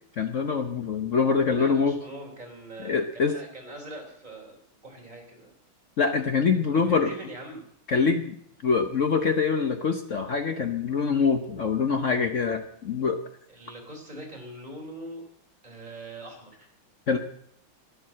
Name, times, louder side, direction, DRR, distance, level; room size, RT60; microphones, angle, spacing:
voice 1, 0.2-2.0 2.8-3.4 6.0-7.1 7.9-8.4 8.6-13.2 17.1-17.2, left 5 dB, 55° left, 7 dB, 0.9 m, -24 dB
voice 2, 1.5-4.6 4.8-5.5 6.5-7.6 13.5-15.3 15.6-16.7, right 1 dB, 20° right, 0 dB, 3.8 m, -42 dB
12.0 x 10.5 x 7.5 m, 0.68 s
omnidirectional pair, 2.3 m